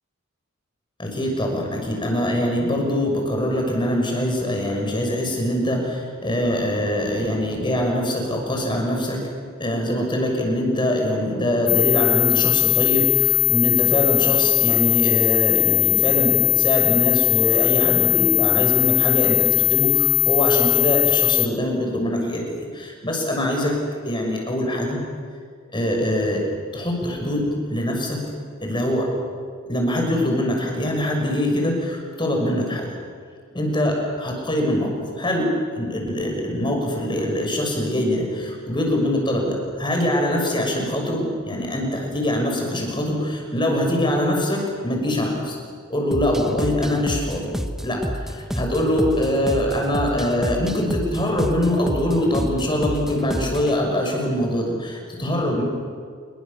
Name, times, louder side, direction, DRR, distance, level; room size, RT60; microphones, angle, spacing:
voice 1, 1.0-9.2 9.6-23.7 24.0-25.0 25.7-26.4 26.7-28.2 28.6-29.1 29.7-32.9 33.5-45.5 45.9-47.5 47.8-55.6, left 1 dB, 20° left, 0 dB, 6.3 m, -23 dB
sound 1, 11.7-21.5, left 16 dB, 90° left, 1.1 m, -19 dB
sound 2, 46.1-53.8, equal, ahead, 1.2 m, -30 dB
28.0 x 23.5 x 7.2 m, 2.1 s
head